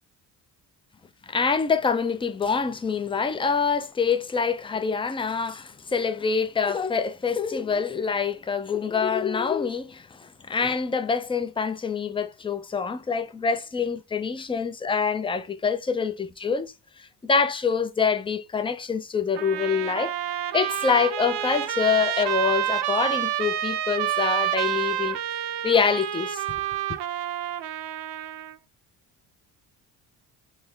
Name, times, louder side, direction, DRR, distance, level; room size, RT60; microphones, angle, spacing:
voice 1, 1.3-16.7 17.2-25.2 25.6-26.4, left 5 dB, 15° left, 0.3 m, -25 dB
Trumpet, 19.4-28.6, right 12 dB, 65° right, 0.5 m, -28 dB
3.9 x 2.1 x 3.2 m
supercardioid pair, 65°, 47 cm